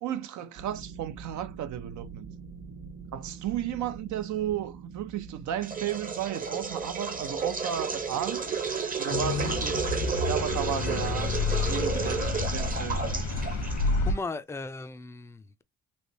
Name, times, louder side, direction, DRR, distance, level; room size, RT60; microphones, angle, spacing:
voice 1, 0.0-2.3 3.1-8.4 9.0-9.8 10.3-11.3 11.7-13.2, right 10 dB, 70° right, 0.6 m, -33 dB
sound 1, 0.6-12.1, right 5 dB, 50° right, 1.0 m, -46 dB
sound 2, 5.6-14.2, right 5 dB, 30° right, 0.7 m, -32 dB
sound 3, 9.1-14.1, left 3 dB, 80° left, 1.1 m, -29 dB
voice 2, 14.0-15.6, left 3 dB, 10° left, 0.4 m, -37 dB
3.2 x 2.9 x 2.7 m
cardioid pair, 90°, 30 cm